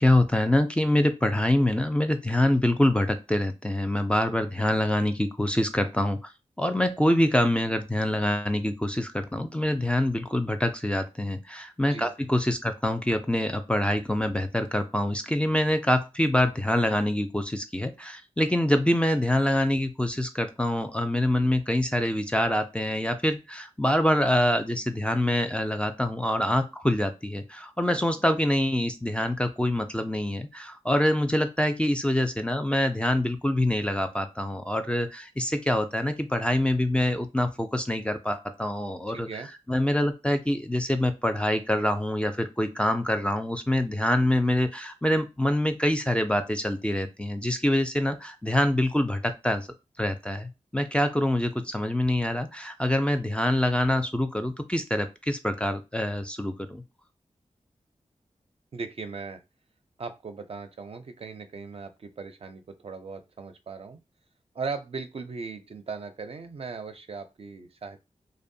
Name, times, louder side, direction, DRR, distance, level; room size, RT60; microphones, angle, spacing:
voice 1, 0.0-6.3 6.6-39.3 39.7-49.7 50.0-56.8, left 1 dB, 10° left, 7 dB, 0.4 m, -25 dB
voice 2, 39.1-39.5 58.7-59.4 60.0-64.0 64.5-68.0, right 4 dB, 55° right, 8 dB, 0.5 m, -38 dB
2.5 x 2.1 x 2.6 m, 0.25 s
cardioid pair, 50°, 12 cm